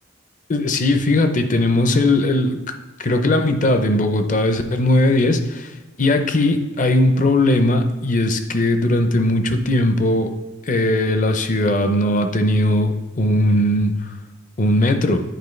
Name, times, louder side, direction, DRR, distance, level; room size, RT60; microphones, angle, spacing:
voice 1, 0.5-2.6 3.0-10.3 10.6-13.9 14.6-15.2, left 1 dB, 40° left, 7 dB, 0.5 m, -18 dB
9.2 x 4.7 x 3.2 m, 1.1 s
head